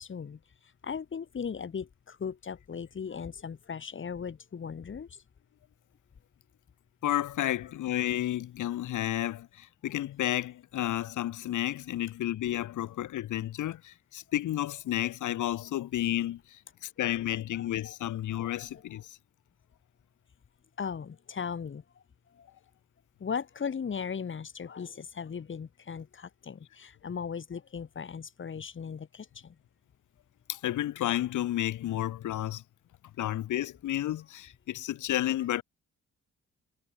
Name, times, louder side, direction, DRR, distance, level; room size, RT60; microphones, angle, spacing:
voice 1, 0.0-5.2 17.3-18.0 18.9-19.0 20.8-22.0 22.3-22.5 23.2-29.6, left 6 dB, 35° left, 1.3 m, -38 dB
voice 2, 7.0-19.2 30.5-32.6 33.2-35.6, left 13 dB, 60° left, 1.0 m, -31 dB
hypercardioid pair, 45°, 35 cm